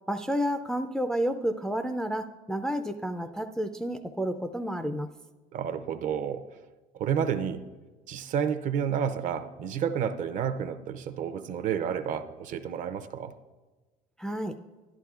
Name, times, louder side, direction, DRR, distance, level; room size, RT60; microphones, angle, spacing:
voice 1, 0.1-5.1 14.2-14.6, equal, 5° left, 6 dB, 0.3 m, -30 dB
voice 2, 5.5-6.4 7.0-7.6 8.1-13.3, right 8 dB, 55° right, 11 dB, 0.6 m, -30 dB
12.0 x 11.0 x 2.4 m, 1.3 s
cardioid pair, 130°, 16 cm